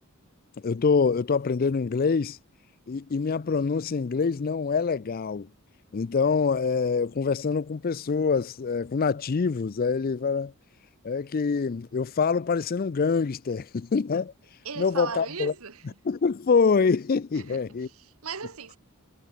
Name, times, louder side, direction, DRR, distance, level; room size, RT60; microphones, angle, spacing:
voice 1, 0.6-2.4 2.9-5.5 5.9-10.5 11.0-14.3 14.8-15.5 16.0-17.9, left 5 dB, 40° left, 0.4 m, -25 dB
voice 2, 14.6-15.8 17.3-17.6 17.9-18.8, right 5 dB, 70° right, 1.5 m, -37 dB
head